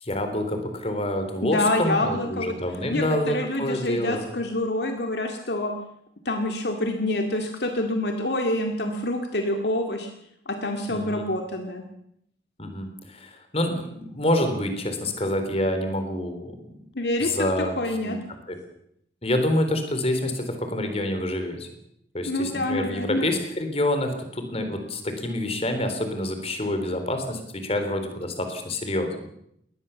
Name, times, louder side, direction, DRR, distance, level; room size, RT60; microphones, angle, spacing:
voice 1, 0.0-4.3 10.9-11.2 12.6-16.7 17.2-17.8 18.0-18.2 18.5-18.6 19.2-21.7 22.1-29.3, left 1 dB, 35° left, 7 dB, 3.8 m, -27 dB
voice 2, 1.4-2.6 2.9-5.7 6.3-10.1 10.5-11.8 17.0-17.3 17.8-18.2 22.3-23.2, left 1 dB, 65° left, 4 dB, 2.1 m, -27 dB
21.5 x 19.0 x 7.1 m, 0.73 s
head